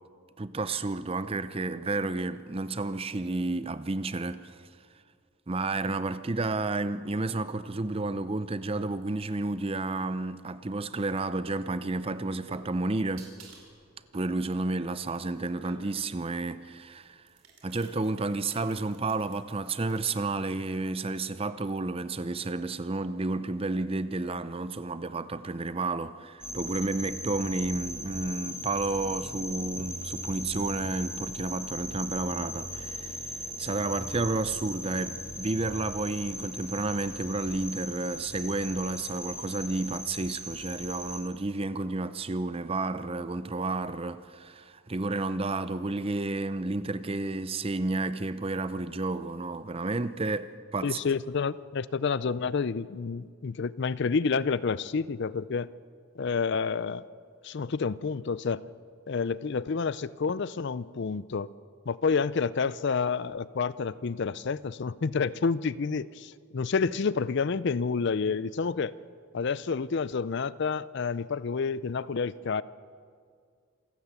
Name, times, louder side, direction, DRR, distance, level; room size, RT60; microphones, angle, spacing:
voice 1, 0.4-4.6 5.5-13.3 14.1-17.2 17.6-51.0, right 2 dB, 25° right, 0.6 m, -31 dB
sound 1, 12.0-16.2 17.0-20.0, right 3 dB, 75° right, 4.5 m, -53 dB
sound 2, 26.4-41.2, equal, 5° right, 2.5 m, -38 dB
voice 2, 50.8-55.7 56.2-57.0 57.4-58.6 59.1-61.5 61.9-68.9 69.3-72.6, left 5 dB, 55° left, 0.4 m, -29 dB
27.0 x 13.0 x 8.1 m
head